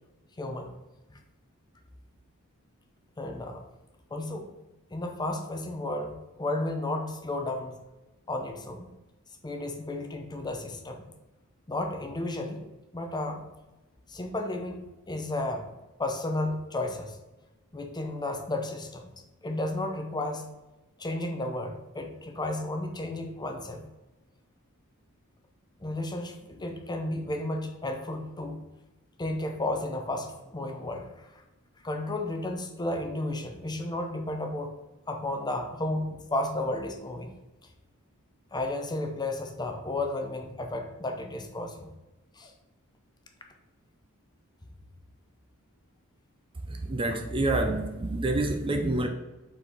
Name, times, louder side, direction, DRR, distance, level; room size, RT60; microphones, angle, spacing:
voice 1, 0.4-0.7 1.1-1.2 3.2-3.6 4.1-4.5 4.9-7.7 8.3-8.9 9.4-11.1 11.7-13.4 14.1-15.7 16.0-17.2 17.7-19.1 19.4-20.5 21.0-23.8 25.8-28.6 29.2-31.1 31.8-34.7 35.1-37.3 38.5-41.9 42.4-42.5, left 2 dB, 20° left, 0.6 m, -33 dB
voice 2, 46.9-49.1, right 2 dB, 25° right, 0.5 m, -27 dB
5.1 x 4.3 x 4.9 m
head